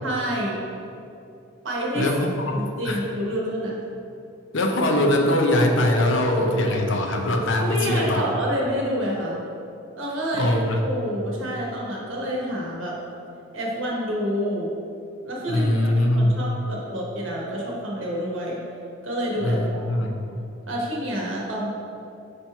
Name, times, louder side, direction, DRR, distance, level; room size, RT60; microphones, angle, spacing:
voice 1, 0.0-0.6 1.6-2.0 2.5-3.8 7.6-9.4 10.0-12.9 13.5-14.7 15.2-18.6 19.0-20.1 20.7-21.7, equal, 70° right, -3 dB, 1.2 m, -28 dB
voice 2, 1.9-3.0 4.5-8.2 10.3-10.8 15.5-16.4 19.4-20.1, left 1 dB, 65° left, 2 dB, 0.6 m, -22 dB
5.2 x 4.3 x 4.4 m, 2.7 s
head